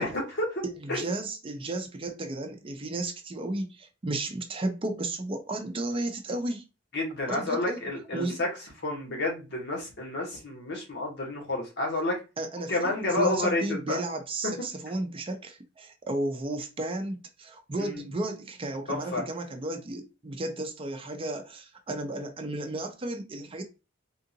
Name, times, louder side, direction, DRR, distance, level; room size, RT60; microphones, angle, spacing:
voice 1, 0.0-0.6 0.9-1.0 6.9-8.5 8.8-12.2 12.7-14.0 17.8-18.1 18.9-19.2, left 2 dB, 60° left, 1.3 m, -30 dB
voice 2, 0.8-6.6 7.3-7.8 8.1-8.4 12.4-23.6, right 2 dB, 30° right, 0.5 m, -33 dB
3.7 x 2.4 x 2.7 m
head